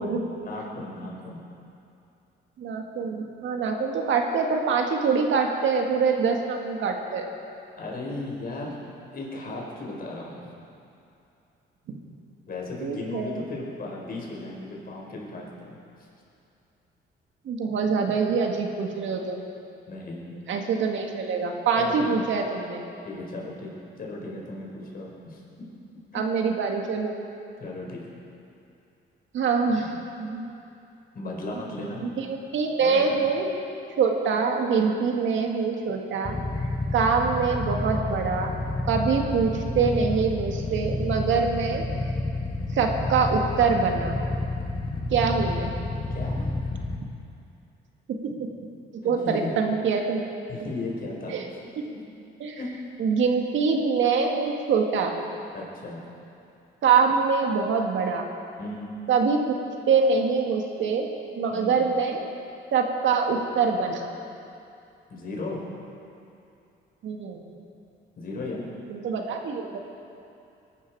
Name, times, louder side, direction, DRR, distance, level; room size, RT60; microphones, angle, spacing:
voice 1, 0.0-1.4 7.8-8.8 9.1-10.4 12.5-15.8 19.9-20.3 21.8-22.2 23.0-23.7 24.0-25.7 26.1-26.2 27.6-28.0 29.8-29.9 31.1-32.1 32.8-33.2 46.1-46.5 49.0-49.5 50.5-51.4 51.9-52.0 52.6-52.8 55.5-56.0 58.6-59.0 61.5-61.8 65.1-65.6 68.2-68.7, left 2 dB, 50° left, -3 dB, 4.5 m, -36 dB
voice 2, 2.6-7.3 11.9-12.0 12.8-13.3 17.5-19.5 20.5-22.8 26.1-27.1 29.3-29.9 30.2-30.4 32.0-33.5 34.0-36.4 36.9-38.6 38.9-41.8 42.7-44.2 45.1-45.7 48.1-48.5 49.0-50.2 51.3-51.4 52.4-52.6 53.0-55.2 56.8-58.3 59.1-59.4 59.9-61.1 61.4-62.2 62.7-64.1 67.0-67.4 68.9-69.8, right 5 dB, 75° right, 2 dB, 1.9 m, -24 dB
Motorcycle / Idling, 36.2-47.0, left 2 dB, 25° left, 1.4 m, -30 dB
20.5 x 12.0 x 4.7 m, 2.6 s
cardioid pair, 90°, 20 cm